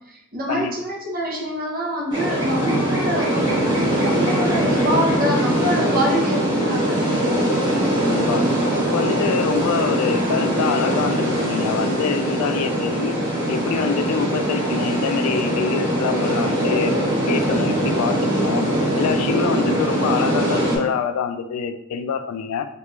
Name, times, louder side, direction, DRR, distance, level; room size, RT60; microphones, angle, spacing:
voice 1, 0.1-7.1, equal, 40° right, -2 dB, 0.8 m, -25 dB
sound 1, 2.1-20.8, right 1 dB, 25° right, 1.1 m, -21 dB
voice 2, 8.9-13.2 13.5-16.9 17.3-18.6 19.0-22.7, left 6 dB, 90° left, 10 dB, 0.3 m, -25 dB
3.2 x 2.5 x 3.1 m, 0.82 s
head